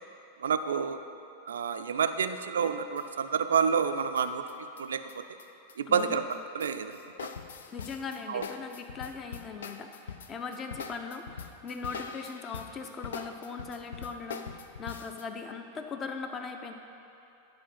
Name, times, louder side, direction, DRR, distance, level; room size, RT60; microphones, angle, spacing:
voice 1, 0.4-1.0 1.5-4.5 4.8-5.2 5.8-6.2 6.5-6.9 8.3-8.4, right 6 dB, 65° right, 9 dB, 0.4 m, -28 dB
sound 1, 2.6-3.3 3.5-6.0 6.3-15.2, left 6 dB, 65° left, 0.4 m, -43 dB
voice 2, 5.9-6.2 7.7-16.7, left 5 dB, 25° left, 6 dB, 0.7 m, -39 dB
10.5 x 4.8 x 5.7 m, 2.8 s
figure-of-eight pair, 90°, 0 cm